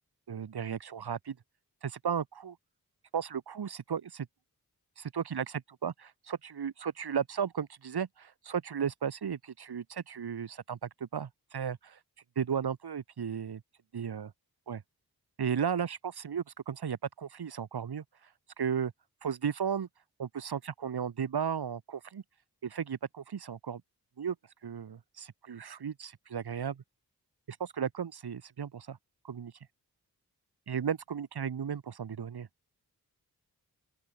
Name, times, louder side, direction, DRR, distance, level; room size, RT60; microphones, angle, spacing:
voice 1, 0.3-1.4 1.8-2.6 3.1-4.3 5.0-12.0 12.3-13.6 13.9-14.3 14.7-14.8 15.4-18.0 18.6-18.9 19.2-19.9 20.2-22.2 22.6-23.8 24.2-24.3 24.6-26.8 27.5-29.0 29.2-29.5 30.7-32.5, right 7 dB, 80° right, 1.6 m, -35 dB
open air
cardioid pair, 60°, 38 cm